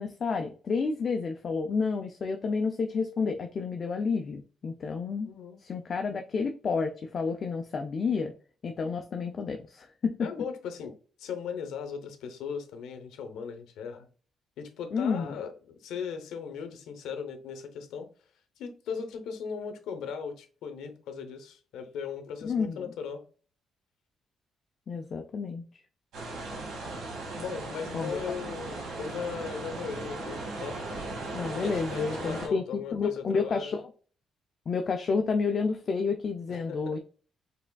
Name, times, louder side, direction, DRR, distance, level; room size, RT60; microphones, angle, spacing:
voice 1, 0.0-5.3 5.6-8.3 8.6-10.3 14.9-15.3 22.4-22.9 24.9-25.6 27.9-28.2 31.3-33.8 34.7-37.0, left 5 dB, 45° left, 5 dB, 0.4 m, -30 dB
voice 2, 5.2-5.6 10.2-14.1 14.6-18.1 18.6-23.2 27.4-30.8 31.5-33.7 36.5-37.0, left 6 dB, 90° left, 8 dB, 0.7 m, -38 dB
sound 1, 26.1-32.5, right 2 dB, 80° right, 1.8 m, -37 dB
4.7 x 3.3 x 2.2 m, 0.40 s
cardioid pair, 105°, 0 cm